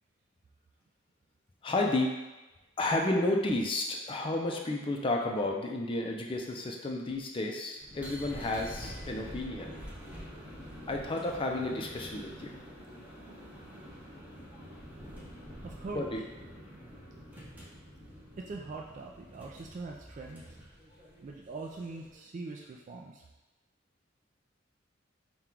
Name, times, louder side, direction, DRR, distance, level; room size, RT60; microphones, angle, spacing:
voice 1, 1.6-2.1 2.8-9.7 10.9-12.5 15.9-16.2, left 2 dB, 25° left, 1 dB, 0.4 m, -31 dB
sound 1, 7.8-22.2, equal, 10° right, 0.7 m, -47 dB
voice 2, 15.6-16.2 18.4-20.4 21.2-23.3, right 3 dB, 40° right, 0 dB, 0.3 m, -42 dB
4.4 x 2.3 x 3.7 m, 1.1 s
head